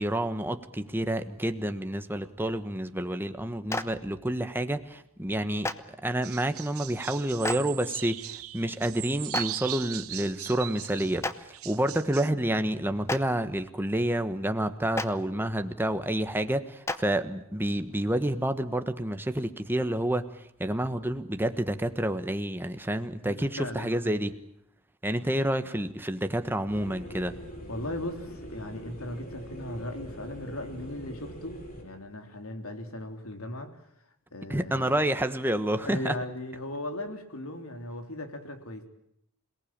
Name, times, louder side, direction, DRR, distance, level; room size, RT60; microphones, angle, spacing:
voice 1, 0.0-24.3 25.0-27.3 34.5-36.1, right 1 dB, 10° right, 8 dB, 1.3 m, -29 dB
Clapping, 3.7-3.8 5.6-5.7 7.4-7.6 9.3-9.4 11.2-11.3 13.0-13.2 14.9-15.0 16.8-17.0, left 2 dB, 15° left, 1.0 m, -29 dB
sound 1, 6.2-12.3, right 14 dB, 85° right, 0.9 m, -39 dB
voice 2, 23.2-24.2 27.7-33.8 34.3-35.0 35.8-38.8, left 1 dB, 85° left, 5 dB, 3.5 m, -38 dB
sound 2, 26.7-31.8, equal, 45° left, 7.1 m, -43 dB
27.5 x 19.0 x 8.9 m, 0.77 s
head